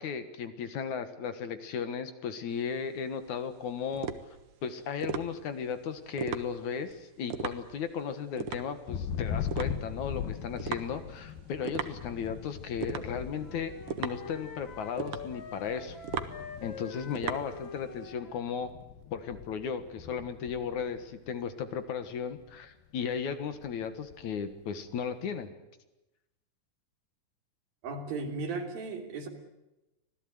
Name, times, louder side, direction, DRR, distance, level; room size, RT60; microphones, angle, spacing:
voice 1, 0.0-4.1 4.6-13.7 14.0-16.0 16.6-18.7 19.1-25.5, left 7 dB, 60° left, 10 dB, 2.7 m, -35 dB
sound 1, 2.5-18.1, right 6 dB, 55° right, 1.8 m, -39 dB
Thunder, 8.9-21.8 22.1-22.7 23.0-24.5, left 8 dB, 90° left, 3.0 m, -41 dB
Wind instrument woodwind instrument, 13.3-18.5, left 4 dB, 45° left, 2.0 m, -46 dB
voice 2, 27.8-29.3, right 3 dB, 90° right, 4 dB, 4.9 m, -35 dB
26.0 x 17.5 x 9.4 m, 0.98 s
omnidirectional pair, 4.0 m